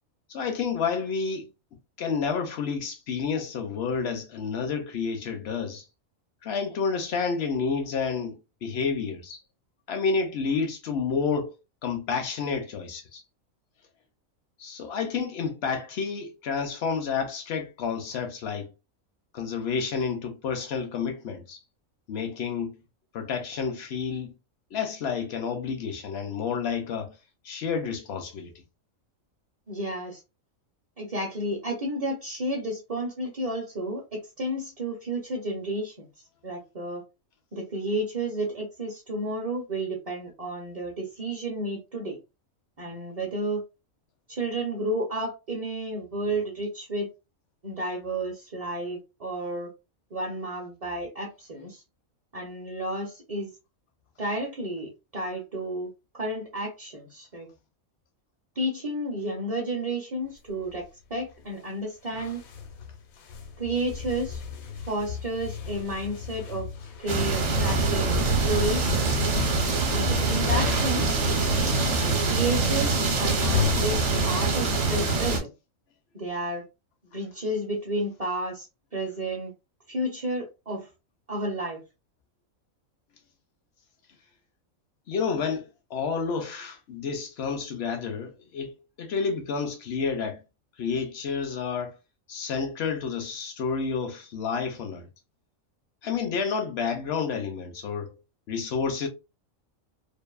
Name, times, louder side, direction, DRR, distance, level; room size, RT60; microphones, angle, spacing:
voice 1, 0.3-1.5 2.0-5.8 6.4-9.4 9.9-11.5 11.8-13.2 14.6-18.7 19.3-21.6 22.1-22.7 23.1-24.3 24.7-27.2 27.4-28.5 77.1-77.2 85.1-90.4 90.8-91.9 92.3-95.1 96.0-98.1 98.5-99.1, left 5 dB, 65° left, 0.7 m, -30 dB
voice 2, 29.7-30.2 31.0-36.1 36.4-37.0 37.5-42.2 42.8-43.6 44.3-47.1 47.6-49.7 50.1-51.8 52.3-53.5 54.2-57.5 58.6-60.8 61.1-62.4 63.6-64.4 64.9-66.7 67.0-69.3 69.9-71.2 72.3-75.5 76.1-76.6 77.1-78.7 78.9-79.5 79.9-80.9 81.3-81.8, right 1 dB, 40° right, 0.6 m, -31 dB
sound 1, 60.2-61.7 62.0-74.0, left 6 dB, 85° left, 1.1 m, -35 dB
sound 2, 67.1-75.4, right 3 dB, 60° right, 1.0 m, -24 dB
2.6 x 2.4 x 2.3 m
omnidirectional pair, 1.4 m